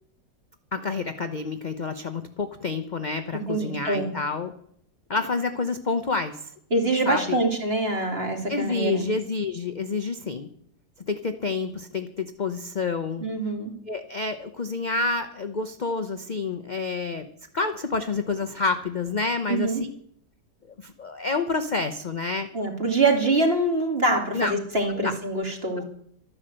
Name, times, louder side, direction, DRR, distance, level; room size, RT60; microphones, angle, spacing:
voice 1, 0.7-4.5 5.1-6.5 7.1-7.4 8.5-10.5 11.1-13.2 13.9-17.3 17.5-19.9 20.8-22.5 24.3-24.5 24.9-25.1 25.7-25.8, left 4 dB, 40° left, 8 dB, 0.6 m, -28 dB
voice 2, 3.3-4.1 6.7-9.1 13.2-13.7 19.5-19.8 22.5-25.8, right 2 dB, 35° right, 2 dB, 2.8 m, -24 dB
12.5 x 10.5 x 7.8 m, 0.66 s
omnidirectional pair, 1.8 m